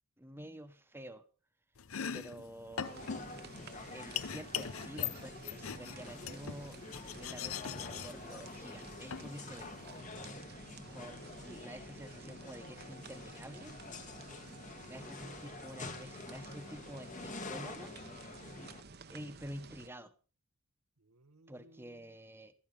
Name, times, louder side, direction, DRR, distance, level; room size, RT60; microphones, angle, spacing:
voice 1, 0.2-1.2 2.1-2.9 3.9-6.8 7.1-9.7 10.9-13.7 14.9-17.9 19.1-20.1 21.5-22.5, equal, 10° right, 10 dB, 1.2 m, -49 dB
Domestic sounds home sounds, 1.8-10.0, left 8 dB, 70° left, 0.7 m, -42 dB
sound 1, 2.7-18.8, left 3 dB, 35° left, 1.5 m, -48 dB
sound 2, 2.8-19.9, right 4 dB, 45° right, 1.1 m, -53 dB
voice 2, 14.2-14.6 21.0-22.2, right 2 dB, 80° right, 12 dB, 1.3 m, -65 dB
16.0 x 13.0 x 5.4 m, 0.38 s
head